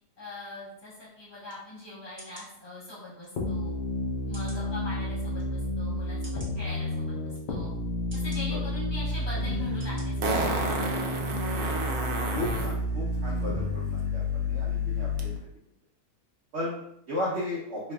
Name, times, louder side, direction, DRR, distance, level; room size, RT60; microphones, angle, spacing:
voice 1, 0.2-3.7 4.2-7.7 8.1-10.7, left 1 dB, 15° left, -8 dB, 1.5 m, -42 dB
sound 1, 1.5-1.6 2.2-2.5 3.2-3.3 4.3-4.6 5.3-5.4 6.2-6.5 7.3-7.4 8.1-8.4 9.1-9.3 9.8-10.0 10.5-10.6, right 1 dB, 10° right, 0.9 m, -48 dB
sound 2, 3.4-15.4, left 2 dB, 60° left, 0.8 m, -30 dB
Fart, 9.1-9.2 10.2-12.8 15.2-15.3, right 2 dB, 75° right, 1.1 m, -30 dB
voice 2, 12.3-15.3 16.5-16.8 17.1-17.8, left 1 dB, 50° right, -6 dB, 0.9 m, -35 dB
4.6 x 3.2 x 2.3 m, 0.77 s
omnidirectional pair, 1.7 m